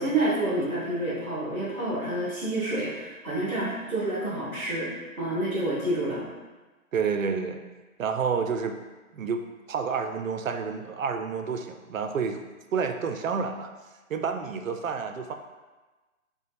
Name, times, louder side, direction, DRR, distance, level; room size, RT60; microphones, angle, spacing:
voice 1, 0.0-4.9 5.2-6.3, right 1 dB, 5° left, -20 dB, 0.6 m, -28 dB
voice 2, 6.9-7.6 8.0-8.8 9.1-9.4 9.7-12.4 12.7-13.7 14.1-15.3, right 6 dB, 65° right, 6 dB, 0.6 m, -29 dB
4.8 x 2.3 x 3.4 m, 1.2 s
figure-of-eight pair, 140°, 42 cm